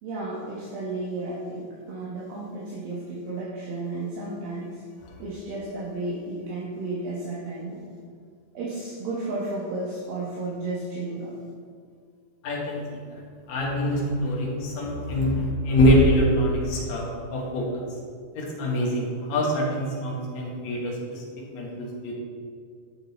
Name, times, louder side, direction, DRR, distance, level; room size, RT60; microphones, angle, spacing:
voice 1, 0.0-4.8 5.2-7.8 8.5-11.3, right 2 dB, 75° right, -6 dB, 3.0 m, -33 dB
voice 2, 12.4-12.8 13.1-13.2 13.5-17.8 18.3-21.2 21.5-22.1, equal, 55° left, -3 dB, 2.7 m, -24 dB
11.5 x 6.4 x 4.3 m, 2.1 s
omnidirectional pair, 4.3 m